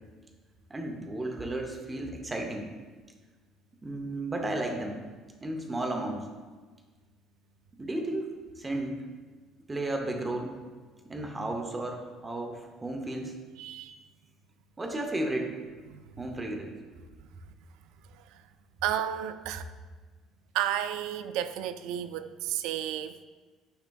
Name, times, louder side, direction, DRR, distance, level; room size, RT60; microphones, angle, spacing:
voice 1, 0.7-2.7 3.8-5.0 5.4-6.3 7.8-9.0 9.7-10.5 11.1-13.4 14.8-15.6 16.2-16.8, right 1 dB, 15° right, 3 dB, 0.6 m, -33 dB
voice 2, 13.6-14.0 15.9-16.0 18.3-18.4 18.8-19.6 20.5-23.2, right 11 dB, 80° right, 11 dB, 0.3 m, -32 dB
9.3 x 4.9 x 2.3 m, 1.4 s
cardioid pair, 160°, 0 cm